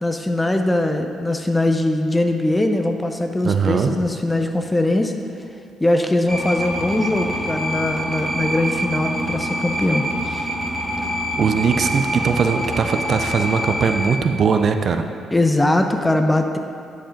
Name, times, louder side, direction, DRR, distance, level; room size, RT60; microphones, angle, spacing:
voice 1, 0.0-5.1 5.8-10.5 15.3-16.6, left 1 dB, 15° left, 5 dB, 0.6 m, -21 dB
voice 2, 3.4-3.9 11.0-11.1 11.4-15.0, right 6 dB, 55° right, 7 dB, 0.5 m, -20 dB
sound 1, 6.3-14.2, equal, 5° right, 1.6 m, -25 dB
10.5 x 4.9 x 5.1 m, 2.3 s
cardioid pair, 90°, 0 cm